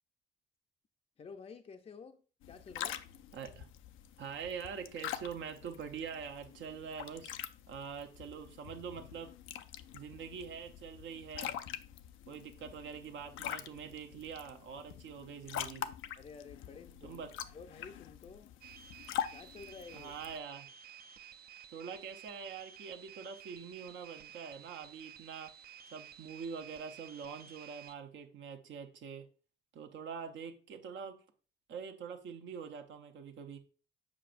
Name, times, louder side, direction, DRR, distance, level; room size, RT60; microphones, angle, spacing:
voice 1, 1.2-3.1 16.2-17.2 17.5-18.5 19.3-20.1, left 5 dB, 30° left, 0.5 m, -51 dB
sound 1, 2.4-20.4, left 11 dB, 85° left, 0.4 m, -45 dB
voice 2, 3.3-3.7 4.2-7.4 7.7-9.3 9.9-11.6 12.3-15.9 17.0-17.3 19.9-20.7 21.7-25.5 25.9-29.3 29.7-31.2 31.7-33.6, right 6 dB, 70° right, 0.8 m, -44 dB
sound 2, 18.6-28.0, right 9 dB, 50° right, 0.5 m, -53 dB
7.3 x 5.2 x 2.5 m
cardioid pair, 90°, 20 cm